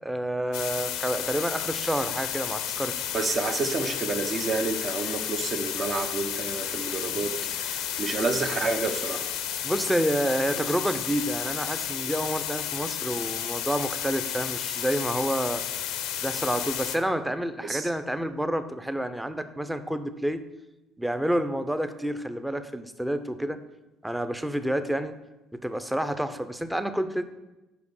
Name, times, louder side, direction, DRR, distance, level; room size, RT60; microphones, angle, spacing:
voice 1, 0.0-2.9 9.6-15.6 16.2-20.4 21.0-23.6 24.0-25.2 25.5-27.2, right 1 dB, 5° right, 10 dB, 0.6 m, -29 dB
sound 1, 0.5-17.0, left 10 dB, 80° left, 0.5 m, -32 dB
voice 2, 3.1-9.2 17.6-17.9, right 3 dB, 45° right, 6 dB, 0.9 m, -29 dB
5.2 x 5.0 x 6.3 m, 1.0 s
hypercardioid pair, 65°, 0 cm